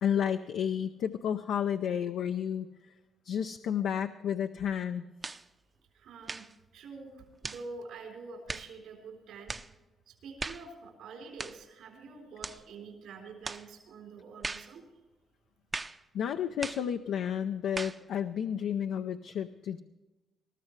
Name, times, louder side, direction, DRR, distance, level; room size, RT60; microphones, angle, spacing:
voice 1, 0.0-2.7 3.2-5.0 16.1-19.8, left 8 dB, 80° left, 7 dB, 0.6 m, -31 dB
sound 1, 5.2-5.5 6.2-6.5 7.4-7.7 8.5-8.7 9.5-9.7 10.4-10.7 11.4-11.6 12.4-12.6 13.4-13.7 14.4-14.7 15.7-16.0 16.6-16.9 17.8-18.0, right 3 dB, 25° right, 0.6 m, -38 dB
voice 2, 5.9-6.5 6.7-9.5 10.1-14.9, right 4 dB, 80° right, 2 dB, 3.7 m, -46 dB
21.0 x 13.5 x 3.2 m, 1.1 s
cardioid pair, 90°, 0 cm